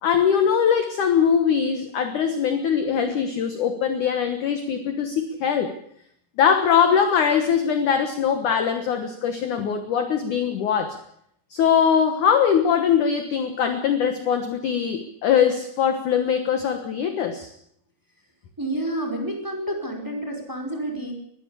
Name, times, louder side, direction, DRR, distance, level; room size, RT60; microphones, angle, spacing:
voice 1, 0.0-5.7 6.4-11.0 11.5-17.5, left 7 dB, 60° left, 8 dB, 2.2 m, -21 dB
voice 2, 18.6-21.1, right 1 dB, 5° right, 2 dB, 4.5 m, -29 dB
21.5 x 14.5 x 8.3 m, 0.71 s
omnidirectional pair, 5.1 m